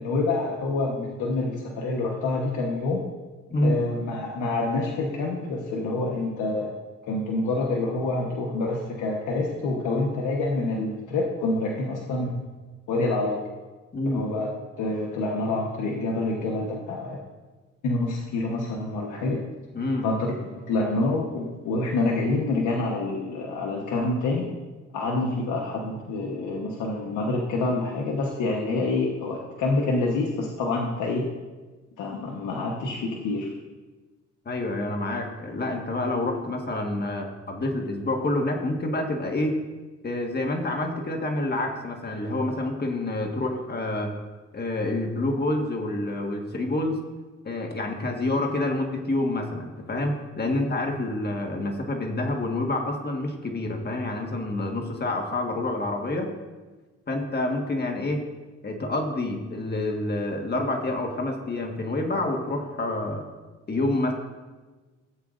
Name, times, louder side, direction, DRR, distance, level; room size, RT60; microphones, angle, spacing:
voice 1, 0.0-3.0 3.6-6.7 7.0-12.4 12.9-13.4 14.0-14.5 14.8-17.2 17.8-19.4 20.0-20.3 20.7-24.4 24.9-31.2 32.0-33.5, left 2 dB, 80° left, -2 dB, 1.3 m, -27 dB
voice 2, 13.9-14.3 19.7-20.1 34.4-39.6 40.0-44.2 44.5-47.0 47.4-56.3 57.1-58.2 58.6-63.3 63.7-64.1, left 2 dB, 35° left, 2 dB, 1.6 m, -28 dB
16.0 x 8.0 x 2.6 m, 1.3 s
cardioid pair, 90°, 30 cm